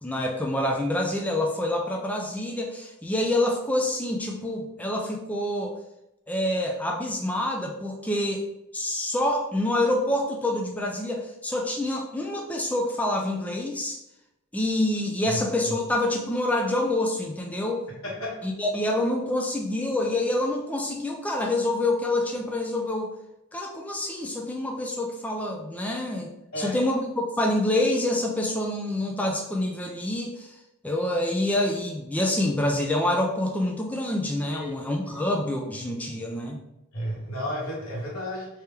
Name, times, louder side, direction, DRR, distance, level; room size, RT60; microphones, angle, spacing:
voice 1, 0.0-5.8 6.3-8.5 8.7-14.0 14.5-17.8 18.4-23.1 23.5-26.3 26.6-30.5 30.8-36.6, left 1 dB, 5° left, 0 dB, 0.3 m, -27 dB
voice 2, 18.0-18.4 26.5-26.8 34.5-34.7 35.1-35.2 36.9-38.5, left 1 dB, 90° left, -3 dB, 1.2 m, -32 dB
3.4 x 2.8 x 3.3 m, 0.88 s
head